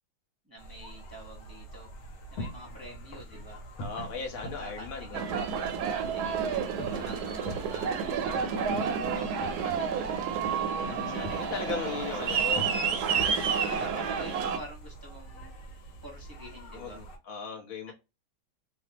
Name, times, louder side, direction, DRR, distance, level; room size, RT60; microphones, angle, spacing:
voice 1, 0.4-1.9 2.3-3.6 4.4-7.2 7.7-8.7 9.1-13.4 13.7-15.5 16.0-17.0, right 1 dB, 25° right, 0.5 m, -47 dB
sound 1, 0.6-17.2, right 1 dB, 65° left, 1.4 m, -46 dB
sound 2, 1.9-15.4, left 1 dB, 85° left, 1.6 m, -45 dB
voice 2, 3.8-5.2 10.8-13.1 13.6-13.9 16.7-17.9, left 5 dB, 45° left, 0.8 m, -38 dB
Aircraft, 5.1-14.6, right 6 dB, 70° right, 0.9 m, -30 dB
3.3 x 2.2 x 2.8 m
omnidirectional pair, 2.2 m